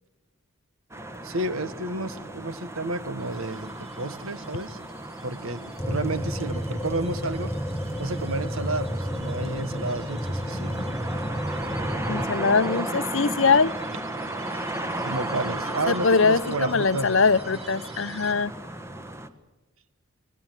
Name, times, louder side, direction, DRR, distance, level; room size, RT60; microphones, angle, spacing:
sound 1, 0.9-19.3, right 1 dB, 15° right, 1.3 m, -35 dB
voice 1, 1.2-4.8 5.2-7.5 8.0-10.8 15.0-17.1, right 2 dB, 75° right, 13 dB, 1.4 m, -31 dB
sound 2, 3.2-18.3, right 3 dB, 30° right, 3.4 m, -51 dB
sound 3, 5.8-12.3, equal, 5° left, 0.8 m, -31 dB
voice 2, 12.1-13.7 15.9-18.5, left 4 dB, 60° left, 15 dB, 0.8 m, -22 dB
26.0 x 18.0 x 9.1 m, 1.1 s
head